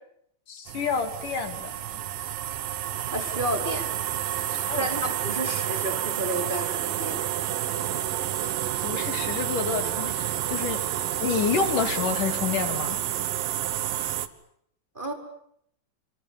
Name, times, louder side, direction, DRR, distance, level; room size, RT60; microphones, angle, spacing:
voice 1, 0.5-2.0 4.5-4.8 8.8-10.8 11.2-13.0, left 6 dB, 75° left, 8 dB, 4.3 m, -29 dB
sound 1, 0.7-14.3, right 12 dB, 85° right, 3.0 m, -29 dB
voice 2, 3.1-3.9 4.8-7.2 14.9-15.1, right 1 dB, 15° right, 3 dB, 4.6 m, -31 dB
27.5 x 26.5 x 7.4 m, 0.70 s
omnidirectional pair, 3.8 m